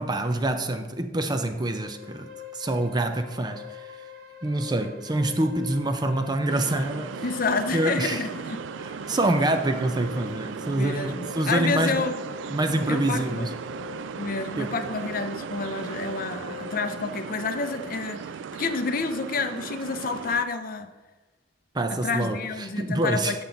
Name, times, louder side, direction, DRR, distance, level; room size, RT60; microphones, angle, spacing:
voice 1, 0.0-4.0 4.4-7.2 7.7-8.2 8.8-12.0 12.5-13.5 14.6-14.8 21.7-23.4, right 1 dB, 25° right, 0.5 m, -26 dB
sound 1, 1.1-17.5, left 8 dB, 60° right, 1.1 m, -45 dB
sound 2, 6.5-20.4, right 6 dB, 90° right, 0.3 m, -37 dB
voice 2, 7.2-8.6 10.7-12.1 12.9-13.5 14.2-20.9 21.9-23.4, left 4 dB, 50° left, 0.6 m, -29 dB
7.5 x 7.0 x 3.9 m
head